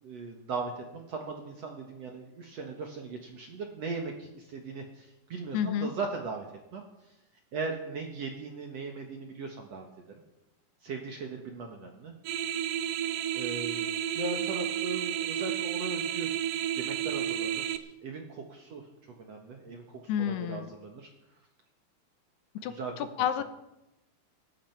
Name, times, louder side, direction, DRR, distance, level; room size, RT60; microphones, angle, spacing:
voice 1, 0.0-6.5 6.7-6.8 7.5-9.9 10.8-12.1 13.3-13.9 14.1-16.4 16.7-18.9 19.2-21.1 22.7-23.1 23.4-23.5, right 4 dB, 60° right, 2 dB, 1.9 m, -38 dB
voice 2, 5.5-5.9 20.1-20.7 22.6-23.4, left 9 dB, 85° left, 11 dB, 3.0 m, -30 dB
sound 1, 12.2-17.8, right 11 dB, 85° right, 1.9 m, -31 dB
17.5 x 14.5 x 4.6 m, 0.92 s
omnidirectional pair, 4.7 m